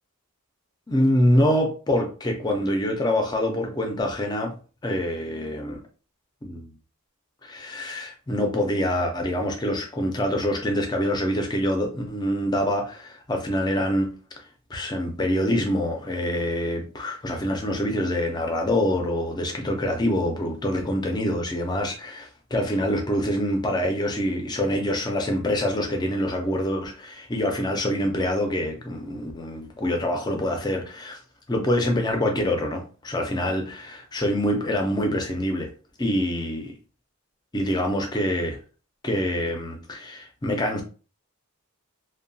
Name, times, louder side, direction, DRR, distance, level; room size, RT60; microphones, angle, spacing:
voice 1, 0.9-4.5 4.8-5.8 6.4-6.7 7.4-14.1 14.7-31.2 31.5-35.7 36.0-36.7 37.5-38.6 39.0-40.8, left 1 dB, 20° left, 0.4 m, -25 dB
2.8 x 2.2 x 2.6 m
head